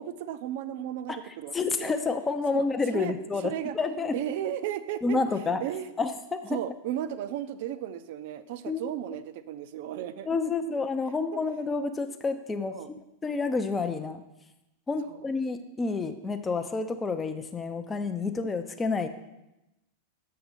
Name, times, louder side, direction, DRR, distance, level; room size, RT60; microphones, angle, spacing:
voice 1, 0.0-1.9 2.5-2.7 2.9-3.1 3.4-3.8 4.1-5.2 5.6-5.9 6.5-10.5 11.3-11.4 12.7-12.9 15.1-15.3, right 11 dB, 50° right, 13 dB, 0.4 m, -35 dB
voice 2, 1.1-4.1 5.0-5.6 6.0-6.6 8.7-8.9 10.3-12.8 13.2-14.2 14.9-19.1, left 4 dB, 15° left, 7 dB, 0.4 m, -29 dB
6.8 x 6.6 x 4.0 m, 0.94 s
figure-of-eight pair, 90°, 0 cm